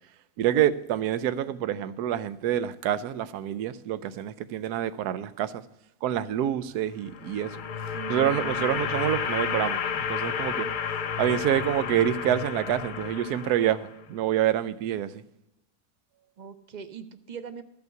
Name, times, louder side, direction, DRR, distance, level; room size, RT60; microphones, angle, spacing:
voice 1, 0.4-5.6 6.0-7.6 8.1-10.7 11.2-15.2, right 11 dB, 80° right, 1.2 m, -27 dB
sound 1, 6.9-14.1, left 7 dB, 70° left, 0.4 m, -31 dB
voice 2, 7.9-8.8 16.4-17.6, right 7 dB, 45° right, 0.6 m, -41 dB
14.0 x 5.5 x 7.9 m
omnidirectional pair, 1.7 m